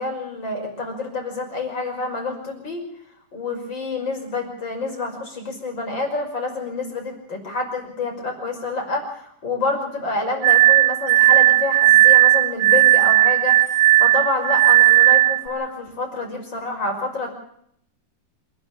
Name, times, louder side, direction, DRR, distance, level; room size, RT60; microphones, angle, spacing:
voice 1, 0.0-2.9 3.3-17.3, left 3 dB, 25° left, 2 dB, 6.1 m, -28 dB
Glass, 10.4-15.5, right 15 dB, 65° right, 3.3 m, -15 dB
27.5 x 13.0 x 8.6 m, 0.69 s
omnidirectional pair, 4.8 m